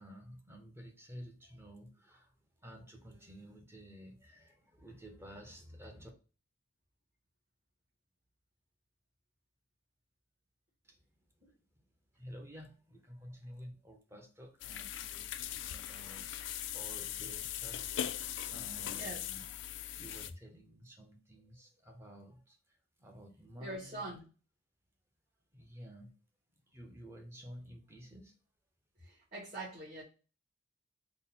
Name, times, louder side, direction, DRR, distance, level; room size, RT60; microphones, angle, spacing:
voice 1, 0.0-6.1 10.8-11.0 12.1-18.2 18.5-19.4 20.0-24.0 25.5-26.1 26.7-28.3, equal, 15° right, 0.6 m, -52 dB
sound 1, 14.6-20.3, left 11 dB, 80° left, 0.3 m, -40 dB
voice 2, 23.6-24.2 29.0-30.0, right 2 dB, 45° right, 1.3 m, -43 dB
3.7 x 2.0 x 4.0 m
head